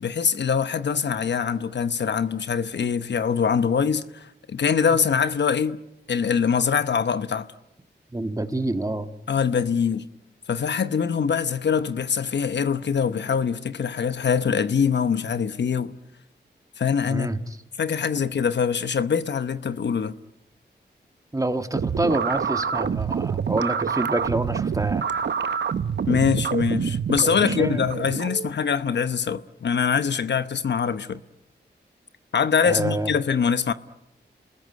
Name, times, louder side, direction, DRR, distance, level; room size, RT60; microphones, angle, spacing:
voice 1, 0.0-5.8 6.1-7.5 9.3-10.1 10.5-15.9 16.8-17.3 17.8-20.1 26.1-31.2 32.3-33.7, left 6 dB, 75° left, 1.0 m, -23 dB
voice 2, 8.1-9.1 17.1-17.4 21.3-25.1 27.4-27.8 32.6-33.1, right 2 dB, 20° right, 1.7 m, -27 dB
sound 1, 21.7-28.5, right 7 dB, 70° right, 0.9 m, -27 dB
29.5 x 20.5 x 9.4 m
cardioid pair, 75°, 18 cm